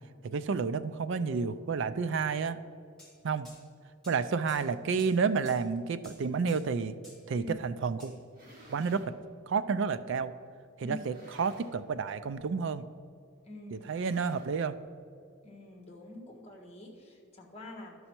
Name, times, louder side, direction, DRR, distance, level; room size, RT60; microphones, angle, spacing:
voice 1, 0.2-2.6 3.2-3.5 4.1-7.0 7.3-8.1 8.7-9.1 9.5-10.3 10.8-12.8 13.7-14.8, right 5 dB, 55° right, 13 dB, 0.4 m, -30 dB
sound 1, 3.0-3.1 3.4-3.6 4.0-4.2 4.5-4.6 5.0-5.1 5.4-5.6 6.0-6.2 6.5-6.6 7.0-7.2 8.0-8.1, left 1 dB, ahead, 1.8 m, -53 dB
sound 2, 8.2-9.1 9.9-10.0 10.9-11.9 12.2-12.5 12.7-12.8 13.7-14.8, equal, 40° right, 2.1 m, -55 dB
voice 2, 13.4-13.9 15.4-18.0, left 1 dB, 30° left, 0 dB, 1.3 m, -45 dB
11.5 x 5.5 x 4.4 m, 2.4 s
head